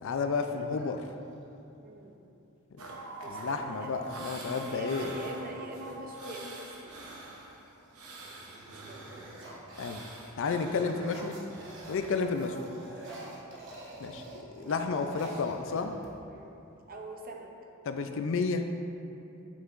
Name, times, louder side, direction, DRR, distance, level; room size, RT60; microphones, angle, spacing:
voice 1, 0.0-1.1 2.8-2.9 3.3-5.1 9.8-10.0 10.4-11.3 11.9-12.6 14.0-15.9 17.9-18.7, left 4 dB, 60° left, 7 dB, 0.4 m, -31 dB
sound 1, 0.7-1.6 3.3-3.4 3.7-4.2 4.8-6.3 6.9-7.3 7.7-12.2 12.5-16.4, right 1 dB, 55° right, 1.0 m, -48 dB
voice 2, 1.8-2.3 3.2-4.0 4.6-7.0 8.7-9.3 10.6-10.9 13.2-13.4 14.6-15.3 16.3-16.6 16.8-17.5, right 2 dB, 40° right, 1 dB, 0.6 m, -44 dB
sound 2, 2.8-12.7, right 2 dB, 85° right, 0.9 m, -45 dB
8.4 x 5.6 x 2.5 m, 2.8 s
head